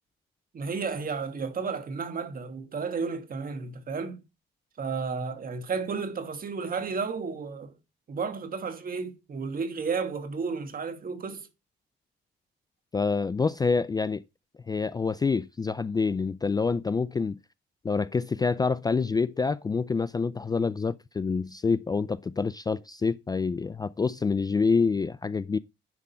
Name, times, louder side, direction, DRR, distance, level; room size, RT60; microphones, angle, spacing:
voice 1, 0.5-4.2 4.8-7.7 8.1-11.5, right 5 dB, 45° right, 1.6 m, -32 dB
voice 2, 12.9-14.2 14.7-17.4 17.8-25.6, left 4 dB, 20° left, 0.3 m, -27 dB
10.5 x 3.7 x 5.6 m
cardioid pair, 90°, 20 cm